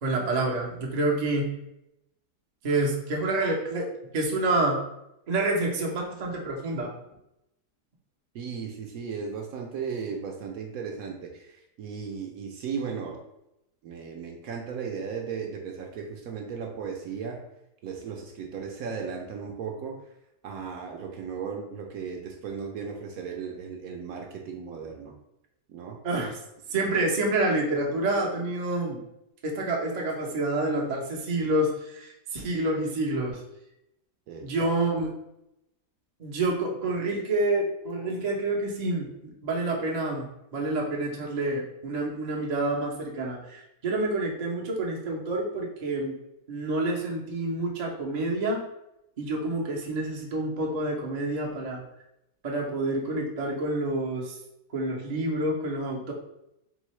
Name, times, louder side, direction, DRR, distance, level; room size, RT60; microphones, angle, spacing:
voice 1, 0.0-1.5 2.6-3.8 4.1-4.8 5.3-6.9 26.0-26.4 26.7-29.0 29.4-33.4 34.4-35.1 36.2-46.1 46.5-48.6 49.2-51.8 52.4-54.4 54.7-56.1, right 2 dB, 45° right, -1 dB, 0.5 m, -28 dB
voice 2, 8.3-13.2 13.8-17.4 17.8-20.1 20.4-25.1 25.7-26.0 34.3-34.7, right 6 dB, 70° right, 2 dB, 0.9 m, -36 dB
3.7 x 3.6 x 3.1 m, 0.86 s
omnidirectional pair, 1.8 m